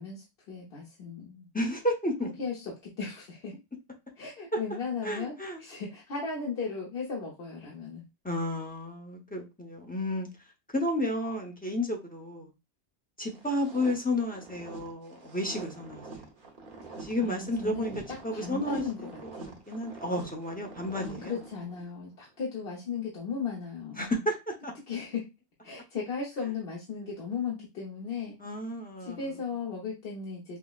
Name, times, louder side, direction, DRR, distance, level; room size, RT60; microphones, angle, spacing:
voice 1, 0.0-1.5 2.4-3.6 4.2-8.1 16.8-19.0 19.3-19.6 21.0-24.0 24.9-25.3 25.6-28.4 29.0-30.6, left 5 dB, 60° left, 1.1 m, -36 dB
voice 2, 1.5-2.3 4.5-4.6 5.0-5.6 8.2-10.3 10.7-12.5 13.2-16.3 17.0-17.9 18.2-19.1 19.7-21.4 24.0-24.7 28.4-29.2, left 1 dB, 10° left, 0.6 m, -32 dB
sound 1, 13.3-21.9, right 3 dB, 50° right, 1.0 m, -46 dB
5.5 x 2.1 x 2.3 m
omnidirectional pair, 1.2 m